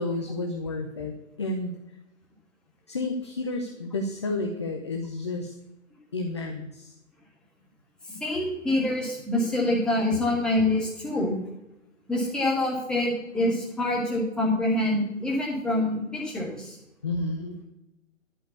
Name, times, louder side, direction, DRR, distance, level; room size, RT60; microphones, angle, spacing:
voice 1, 0.0-1.7 2.9-5.5 6.1-7.0 17.0-17.7, left 2 dB, 20° left, 4 dB, 0.5 m, -31 dB
voice 2, 8.1-11.4 12.1-16.8, left 1 dB, ahead, -4 dB, 1.6 m, -26 dB
11.0 x 5.1 x 8.2 m, 0.92 s
figure-of-eight pair, 140°, 39 cm